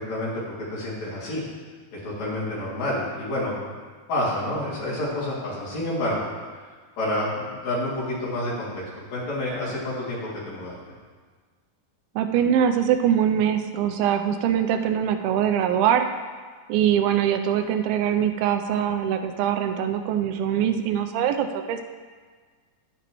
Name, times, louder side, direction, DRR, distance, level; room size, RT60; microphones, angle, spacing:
voice 1, 0.0-1.4 1.9-3.6 4.1-6.2 7.0-10.2 10.5-10.8, left 1 dB, 50° left, -8 dB, 3.7 m, -28 dB
voice 2, 12.2-16.1 16.7-21.8, right 9 dB, 90° right, 6 dB, 2.5 m, -23 dB
11.5 x 8.8 x 3.1 m, 1.5 s
omnidirectional pair, 4.2 m